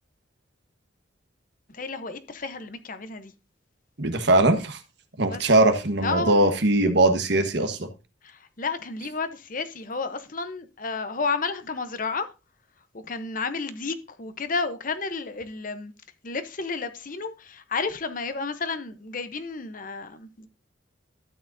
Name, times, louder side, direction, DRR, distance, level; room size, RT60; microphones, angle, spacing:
voice 1, 1.7-3.3 5.3-5.5 6.0-6.4 8.2-12.3 12.9-15.9 16.2-20.5, left 4 dB, 45° left, 0.9 m, -31 dB
voice 2, 4.0-4.8 5.2-7.9, right 2 dB, 60° right, 1.3 m, -21 dB
12.5 x 8.8 x 2.7 m
head